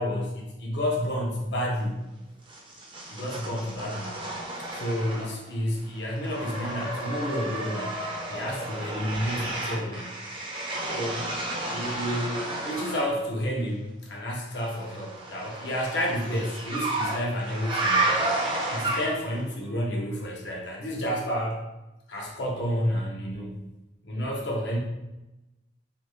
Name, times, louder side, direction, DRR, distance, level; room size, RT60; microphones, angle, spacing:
voice 1, 0.0-2.0 3.1-4.2 4.7-8.0 8.3-10.1 10.9-11.2 11.7-18.2 18.7-21.6 22.1-23.6 24.0-24.8, equal, 75° left, -2 dB, 0.7 m, -30 dB
sound 1, 2.5-5.5 5.8-13.1 14.7-19.4, right 2 dB, 30° right, 0.5 m, -32 dB
2.6 x 2.3 x 3.0 m, 0.98 s
head